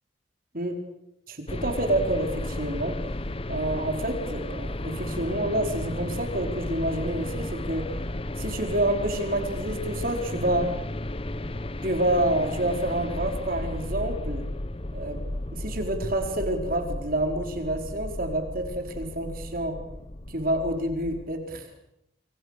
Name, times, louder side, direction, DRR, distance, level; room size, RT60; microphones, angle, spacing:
voice 1, 1.3-3.0 3.5-7.9 8.4-10.7 11.8-14.5 14.9-15.2 15.5-19.8 20.3-21.7, right 1 dB, 55° right, 5 dB, 4.5 m, -28 dB
sound 1, 1.5-21.3, left 1 dB, 30° left, 1.0 m, -34 dB
28.0 x 25.0 x 6.7 m, 0.80 s
head